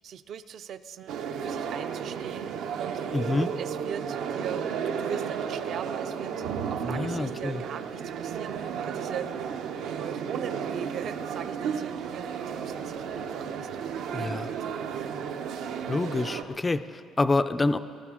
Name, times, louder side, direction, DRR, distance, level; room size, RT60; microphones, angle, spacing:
voice 1, 0.0-1.1 1.4-2.5 2.8-3.0 3.6-9.5 9.8-15.6, right 9 dB, 50° right, 12 dB, 0.4 m, -41 dB
sound 1, 1.1-16.4, right 7 dB, 80° right, 0.8 m, -33 dB
voice 2, 3.1-3.5 6.8-7.6 14.1-14.5 15.9-17.8, left 3 dB, 15° left, 12 dB, 0.4 m, -27 dB
21.5 x 12.5 x 3.7 m, 2.3 s
cardioid pair, 160°, 0 cm